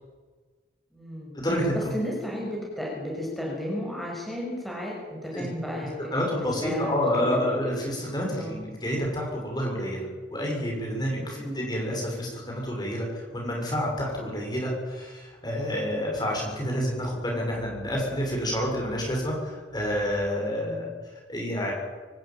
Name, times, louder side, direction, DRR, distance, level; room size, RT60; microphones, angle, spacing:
voice 1, 0.9-1.3 1.7-5.9 6.4-7.2 8.3-8.6 11.1-11.6 20.5-20.8, left 1 dB, ahead, -3 dB, 6.3 m, -33 dB
voice 2, 1.4-1.9 5.3-5.5 6.0-20.9 21.3-21.7, equal, 20° left, -1 dB, 6.7 m, -29 dB
25.5 x 14.0 x 9.2 m, 1.4 s
head